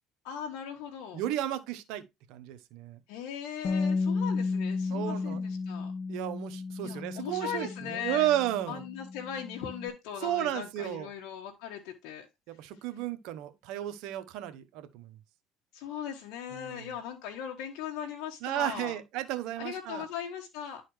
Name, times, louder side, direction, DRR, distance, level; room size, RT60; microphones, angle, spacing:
voice 1, 0.2-1.2 3.1-5.9 6.8-8.3 8.7-12.3 15.7-19.0 19.6-20.8, left 9 dB, 80° left, 1.4 m, -39 dB
voice 2, 1.1-2.0 2.3-3.0 4.9-5.4 6.1-8.8 10.2-11.1 12.5-15.1 16.5-16.9 18.4-20.0, right 13 dB, 75° right, 1.0 m, -33 dB
Bass guitar, 3.6-9.9, left 4 dB, 45° left, 1.1 m, -33 dB
11.0 x 4.2 x 3.2 m
supercardioid pair, 100°, 0 cm